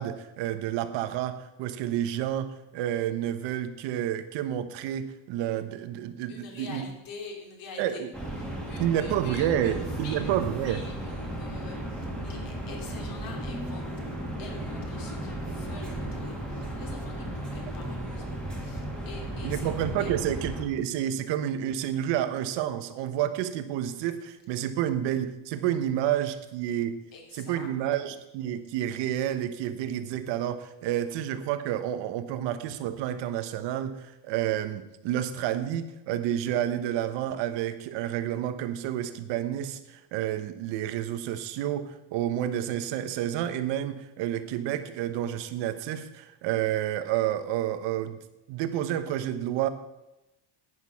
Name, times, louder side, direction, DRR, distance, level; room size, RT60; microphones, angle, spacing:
voice 1, 0.0-6.9 7.8-8.1 8.8-10.8 19.4-27.0 27.3-48.2 48.5-49.7, right 11 dB, 60° right, 11 dB, 1.2 m, -30 dB
voice 2, 6.3-8.0 8.4-19.7 20.0-20.2 27.1-27.7, left 4 dB, 45° left, 1 dB, 3.0 m, -46 dB
sound 1, 8.1-20.6, right 1 dB, ahead, 2.0 m, -35 dB
11.0 x 9.2 x 5.7 m, 0.96 s
cardioid pair, 160°, 47 cm